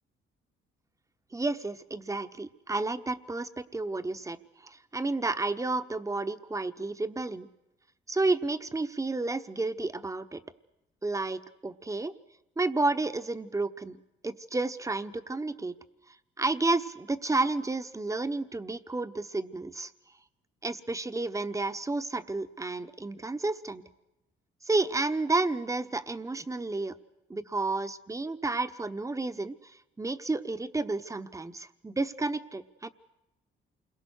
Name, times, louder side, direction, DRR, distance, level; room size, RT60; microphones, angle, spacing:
voice 1, 1.3-7.5 8.1-10.4 11.0-12.1 12.6-14.0 14.2-15.7 16.4-19.9 20.6-23.8 24.6-27.0 27.3-32.9, right 3 dB, 15° right, 10 dB, 1.1 m, -31 dB
28.5 x 22.5 x 6.4 m, 0.92 s
cardioid pair, 90°, 20 cm